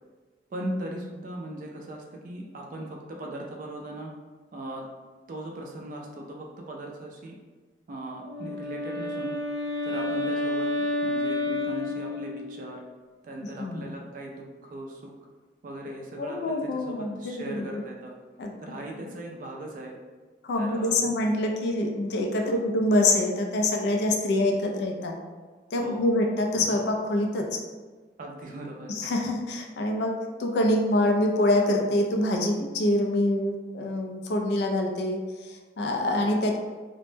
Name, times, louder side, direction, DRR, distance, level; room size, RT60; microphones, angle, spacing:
voice 1, 0.5-4.1 4.5-4.8 5.3-7.4 7.9-9.4 9.8-10.7 11.0-12.8 13.2-15.1 15.6-18.1 18.6-20.0 20.6-21.1 22.5-22.7 25.8-26.1 28.2-28.9, right 1 dB, 50° right, 0 dB, 0.3 m, -38 dB
Wind instrument woodwind instrument, 8.1-12.7, left 2 dB, 30° left, 0.8 m, -30 dB
voice 2, 13.6-13.9 16.2-17.8 18.4-18.8 20.4-25.2 25.7-27.6 28.9-30.1 30.4-36.6, left 1 dB, 65° left, 1 dB, 0.3 m, -25 dB
2.1 x 2.0 x 3.1 m, 1.4 s
head